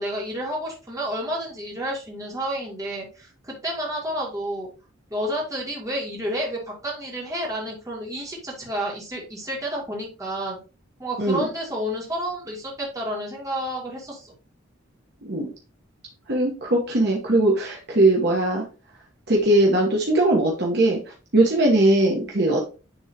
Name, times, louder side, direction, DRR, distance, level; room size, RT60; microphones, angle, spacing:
voice 1, 0.0-4.7 5.1-10.6 11.0-14.3, equal, 15° right, -3 dB, 2.3 m, -30 dB
voice 2, 16.3-18.6 19.3-21.0 21.3-22.7, right 1 dB, 55° right, -1 dB, 1.2 m, -20 dB
9.9 x 3.6 x 2.9 m, 0.33 s
head